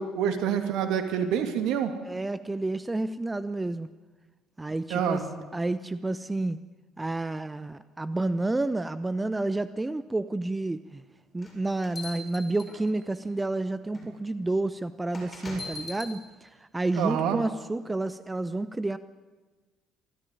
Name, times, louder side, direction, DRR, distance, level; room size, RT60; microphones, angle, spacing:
voice 1, 0.0-1.9 4.9-5.2 17.0-17.4, right 8 dB, 60° right, 7 dB, 2.5 m, -27 dB
voice 2, 2.0-3.9 4.6-5.2 5.5-6.6 7.0-11.0 11.3-19.0, right 2 dB, 15° right, 14 dB, 0.8 m, -30 dB
sound 1, 11.4-13.2 13.9-14.1 15.1-16.1, left 2 dB, 30° left, 7.1 m, -40 dB
26.0 x 14.0 x 9.9 m, 1.3 s
figure-of-eight pair, 55°, 0 cm